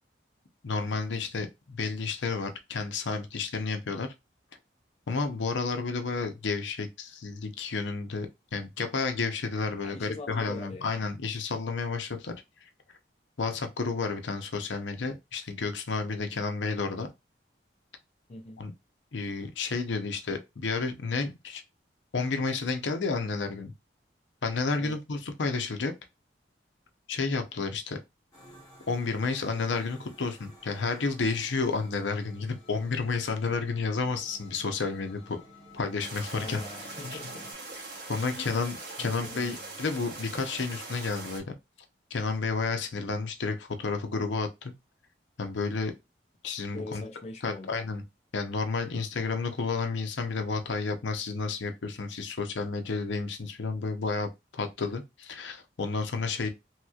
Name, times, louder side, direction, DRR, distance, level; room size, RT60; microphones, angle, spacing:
voice 1, 0.6-4.1 5.1-12.4 13.4-17.1 18.6-18.7 19.1-21.6 22.1-23.7 24.4-25.9 27.1-28.0 28.9-35.4 35.7-36.6 37.1-37.2 38.1-41.6 42.1-44.7 45.4-45.9 46.4-47.0 47.4-48.0 48.3-56.5, left 4 dB, 80° left, 0.7 m, -31 dB
voice 2, 9.8-11.1 18.3-18.6 24.8-25.0 36.3-37.5 38.3-38.6 39.0-39.7 46.7-47.7, left 2 dB, 35° left, 0.5 m, -42 dB
sound 1, 28.3-37.5, left 1 dB, 20° left, 1.3 m, -53 dB
sound 2, 36.0-41.4, right 3 dB, 55° right, 1.5 m, -42 dB
3.1 x 3.0 x 2.3 m
head